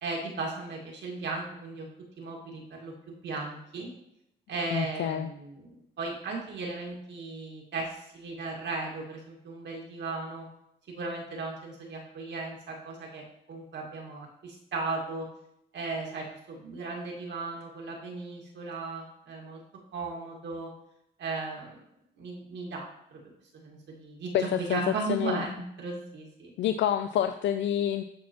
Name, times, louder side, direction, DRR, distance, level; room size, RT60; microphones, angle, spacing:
voice 1, 0.0-1.9 2.2-3.9 4.5-10.5 10.9-15.3 15.7-19.6 19.9-20.7 21.2-21.8 22.2-23.2 23.5-26.5, right 3 dB, 65° right, -1 dB, 1.9 m, -36 dB
voice 2, 4.7-5.3 24.3-24.4 24.7-24.8 25.1-25.4 26.6-28.0, left 10 dB, 70° left, 8 dB, 0.4 m, -27 dB
12.0 x 4.2 x 3.0 m, 0.79 s
cardioid pair, 90°, 20 cm